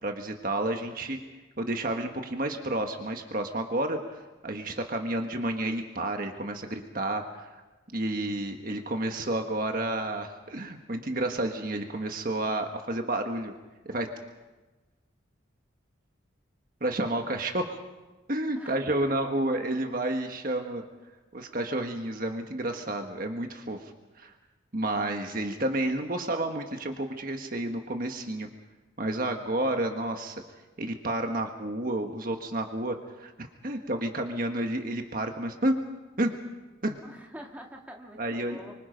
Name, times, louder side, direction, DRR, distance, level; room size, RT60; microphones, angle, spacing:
voice 1, 0.0-1.2 1.6-7.6 7.9-13.5 13.8-14.1 16.8-17.8 18.3-20.8 21.3-23.9 24.2-24.3 24.7-28.5 29.0-30.4 30.8-35.8 36.2-36.3 36.8-37.0 38.2-38.6, right 1 dB, 45° right, 4 dB, 1.5 m, -30 dB
voice 2, 18.6-19.0 37.0-38.8, equal, 10° right, 0 dB, 2.1 m, -45 dB
25.5 x 25.0 x 5.3 m, 1.2 s
head